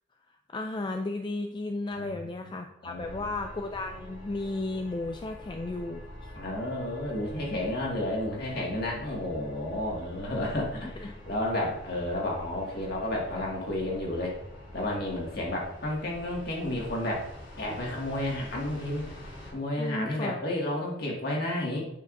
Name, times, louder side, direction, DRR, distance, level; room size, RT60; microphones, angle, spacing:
voice 1, 0.5-6.4 11.0-11.1 19.8-20.4, left 2 dB, 25° left, 5 dB, 0.3 m, -34 dB
voice 2, 2.8-3.3 6.3-14.4 14.7-17.3 17.6-19.1 19.5-21.8, left 1 dB, 55° left, -2 dB, 2.0 m, -31 dB
sound 1, 3.0-19.5, left 1 dB, 75° left, 2.8 m, -46 dB
9.1 x 5.8 x 2.6 m, 0.81 s
head